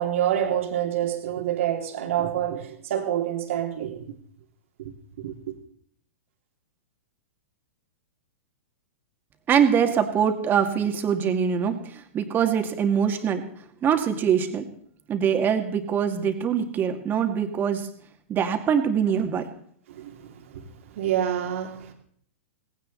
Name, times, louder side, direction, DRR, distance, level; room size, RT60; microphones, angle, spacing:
voice 1, 0.0-4.1 4.8-4.9 5.2-5.5 19.9-20.6 21.0-21.9, right 10 dB, 65° right, 2.8 m, -27 dB
voice 2, 9.5-11.8 12.1-13.4 13.8-14.6 15.1-17.9 18.3-19.5, right 7 dB, 25° right, 2.4 m, -23 dB
18.0 x 16.5 x 4.1 m
hypercardioid pair, 115°, 8 cm